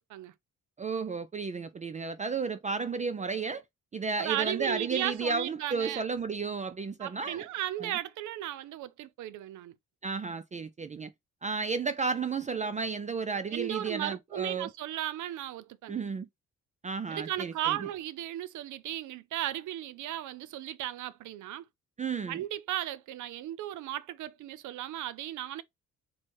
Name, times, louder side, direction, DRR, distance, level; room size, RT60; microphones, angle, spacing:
voice 1, 0.8-3.6 3.9-7.4 7.8-7.9 10.0-11.1 11.4-14.7 15.9-16.3 16.8-17.8 22.0-22.4, right 4 dB, 25° right, 0.4 m, -33 dB
voice 2, 4.2-6.0 7.0-9.7 13.5-16.0 17.1-21.7 22.3-25.6, right 13 dB, 75° right, 0.6 m, -35 dB
4.5 x 2.1 x 4.3 m
cardioid pair, 90°, 30 cm